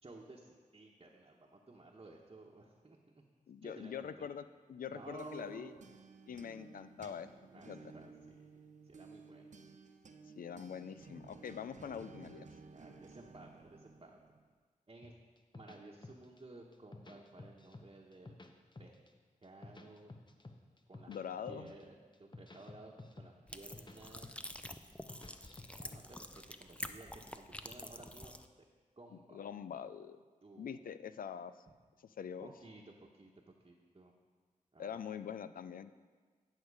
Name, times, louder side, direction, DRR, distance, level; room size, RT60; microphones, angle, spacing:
voice 1, 0.0-3.2 3.6-4.3 4.9-5.8 7.5-8.5 8.8-9.5 12.7-14.2 14.9-15.2 15.5-18.3 18.8-19.0 19.4-20.1 20.9-21.2 21.5-24.4 25.7-28.3 29.0-29.5 30.4-30.8 32.4-33.3 33.6-34.1 34.7-35.0, right 2 dB, 35° right, -3 dB, 1.2 m, -55 dB
voice 2, 3.5-4.4 4.7-5.7 6.3-7.3 7.7-7.8 10.4-12.5 21.1-21.7 29.3-30.2 30.6-31.5 32.2-32.5 34.8-35.9, left 7 dB, 80° left, 12 dB, 0.4 m, -44 dB
sound 1, 4.8-14.5, right 4 dB, 60° right, 0.7 m, -56 dB
sound 2, 15.0-16.4 16.7-17.9 18.1-19.1 19.4-21.2 21.5-21.8 22.1-24.0 24.2-24.6 24.9-26.0, left 2 dB, 35° left, 0.9 m, -52 dB
sound 3, 23.5-28.5, left 1 dB, 10° left, 0.5 m, -48 dB
10.5 x 6.4 x 4.9 m, 1.4 s
cardioid pair, 50°, 14 cm